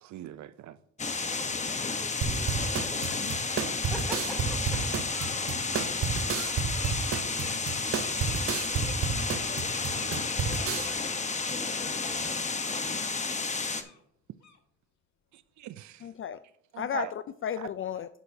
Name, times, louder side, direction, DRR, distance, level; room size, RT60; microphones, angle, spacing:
voice 1, 0.0-0.8 4.7-4.9 9.9-10.5 10.8-11.0 12.2-12.4 13.0-13.1 13.5-13.6 15.3-16.1 16.7-17.1 17.6-17.7, right 12 dB, 70° right, 0.5 m, -42 dB
sound 1, 1.0-13.8, left 4 dB, 25° left, 1.0 m, -31 dB
voice 2, 1.6-3.1 3.5-4.8 5.1-5.2, equal, ahead, 2.8 m, -45 dB
sound 2, 2.2-10.9, right 6 dB, 45° right, 0.8 m, -31 dB
Bird, 4.8-13.5 13.8-14.0 14.4-14.6, left 6 dB, 65° left, 1.6 m, -49 dB
voice 3, 16.0-16.4 16.8-18.1, left 9 dB, 45° left, 0.4 m, -34 dB
11.0 x 8.5 x 2.7 m
cardioid pair, 90°, 30 cm